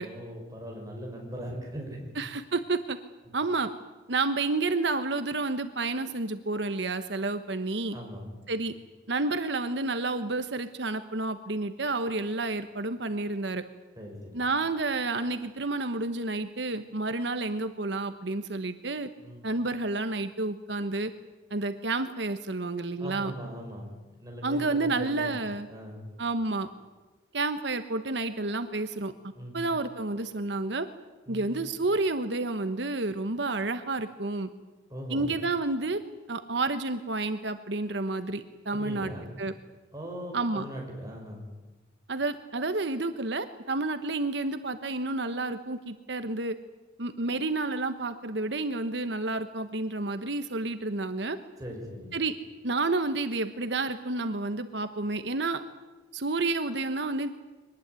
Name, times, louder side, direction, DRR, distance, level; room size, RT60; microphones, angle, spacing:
voice 1, 0.0-2.0 7.9-8.3 14.0-14.5 19.2-19.5 23.0-23.9 24.2-25.4 25.7-26.1 29.4-29.7 31.3-31.5 34.9-35.3 38.7-39.4 39.9-41.4 51.6-52.1, equal, 20° right, 0 dB, 6.0 m, -40 dB
voice 2, 2.2-3.0 3.3-3.7 4.1-8.0 8.5-8.7 9.1-13.6 14.3-19.1 19.4-21.1 21.5-23.3 24.4-25.7 26.2-26.7 27.3-29.1 29.5-30.9 31.3-34.5 35.1-36.0 36.3-39.1 39.4-39.5 40.3-40.6 42.1-46.6 47.0-51.4 52.1-52.3 52.6-55.6 56.1-57.3, right 3 dB, 65° right, 9 dB, 1.1 m, -30 dB
23.5 x 19.5 x 9.6 m, 1.2 s
head